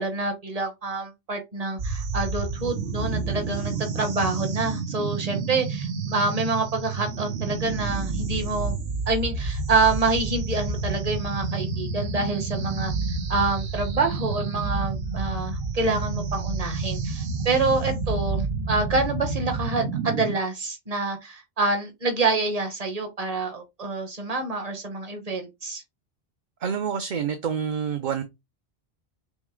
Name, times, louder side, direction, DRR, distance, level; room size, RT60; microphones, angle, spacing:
voice 1, 0.0-8.8 9.1-12.9 13.3-25.8, right 3 dB, 40° right, 1.1 m, -27 dB
sound 1, 1.8-20.3, right 4 dB, 90° right, 1.1 m, -29 dB
voice 2, 26.6-28.2, right 7 dB, 55° right, 0.7 m, -27 dB
6.1 x 2.1 x 3.7 m
omnidirectional pair, 1.1 m